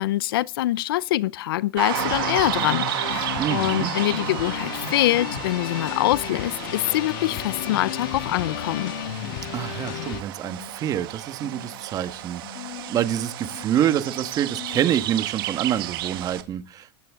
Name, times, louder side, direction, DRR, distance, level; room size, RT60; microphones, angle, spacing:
voice 1, 0.0-8.9, left 15 dB, 90° left, 0.6 m, -24 dB
sound 1, 1.8-16.4, right 15 dB, 75° right, 2.1 m, -33 dB
sound 2, 1.9-10.2, left 11 dB, 70° left, 1.8 m, -33 dB
voice 2, 3.4-3.9 9.5-16.9, right 10 dB, 30° right, 1.5 m, -26 dB
sound 3, 9.3-15.3, left 10 dB, 45° left, 2.8 m, -44 dB
19.5 x 15.0 x 3.7 m
supercardioid pair, 145°, 12 cm